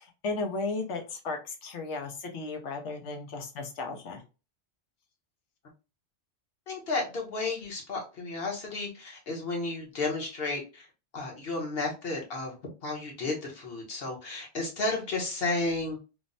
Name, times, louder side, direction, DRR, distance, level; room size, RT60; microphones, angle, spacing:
voice 1, 0.0-4.2, left 3 dB, 85° left, 4 dB, 1.1 m, -35 dB
voice 2, 6.7-10.9 11.1-12.6 12.8-16.0, left 3 dB, 60° left, 0 dB, 1.1 m, -32 dB
3.3 x 2.0 x 2.5 m, 0.31 s
omnidirectional pair, 1.2 m